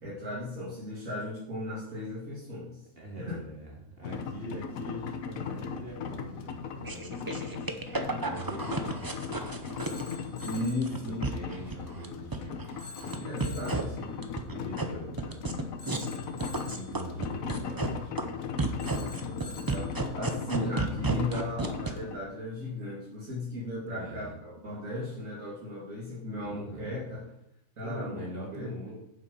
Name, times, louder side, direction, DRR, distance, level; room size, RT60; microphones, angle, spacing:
voice 1, 0.0-2.8 3.2-3.3 10.4-11.2 13.3-13.7 19.1-27.3 27.8-28.2 28.5-29.0, left 1 dB, 70° right, -8 dB, 2.8 m, -36 dB
voice 2, 3.0-7.3 8.2-9.8 10.8-15.4 16.3-18.4 23.8-24.4 26.4-27.0 27.8-29.0, right 1 dB, 45° right, -2 dB, 2.6 m, -43 dB
sound 1, 4.0-22.2, left 6 dB, 85° left, 1.3 m, -38 dB
sound 2, 6.8-10.5 10.8-12.1 12.3-13.2 13.4-13.8 14.2-14.8 15.2-16.1 16.4-17.9 18.2-18.3 18.6-21.9, right 3 dB, 20° right, 0.7 m, -32 dB
Telephone, 9.8-10.9 12.8-13.9 15.8-17.0 18.8-20.0, left 3 dB, 65° left, 1.3 m, -47 dB
8.4 x 7.5 x 5.3 m, 0.81 s
omnidirectional pair, 1.4 m